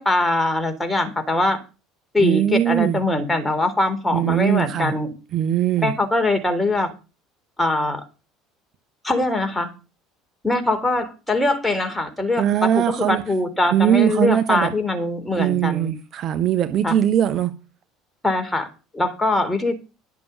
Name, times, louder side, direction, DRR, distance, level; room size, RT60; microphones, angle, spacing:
voice 1, 0.0-1.6 2.1-5.1 5.8-6.9 7.6-8.1 9.0-9.7 10.4-15.9 16.8-16.9 18.2-18.7 18.9-19.8, left 2 dB, 10° left, 3.6 m, -22 dB
voice 2, 2.2-3.0 4.1-4.9 5.3-5.9 12.4-13.2 13.7-14.7 15.4-17.5, right 11 dB, 40° right, 1.1 m, -20 dB
11.5 x 7.0 x 6.8 m
figure-of-eight pair, 60°, 0 cm